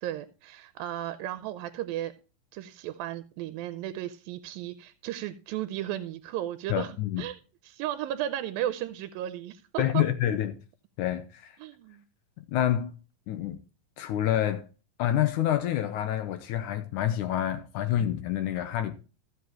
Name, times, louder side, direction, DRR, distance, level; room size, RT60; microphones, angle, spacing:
voice 1, 0.0-2.1 2.5-6.9 7.2-7.4 7.6-10.1 11.6-12.0, right 12 dB, 90° right, 2.5 m, -34 dB
voice 2, 6.7-7.2 9.8-10.6 11.0-11.6 12.4-12.9 13.3-13.6 14.0-14.7 15.0-18.9, left 11 dB, 70° left, 2.1 m, -28 dB
14.5 x 7.9 x 2.9 m
omnidirectional pair, 4.1 m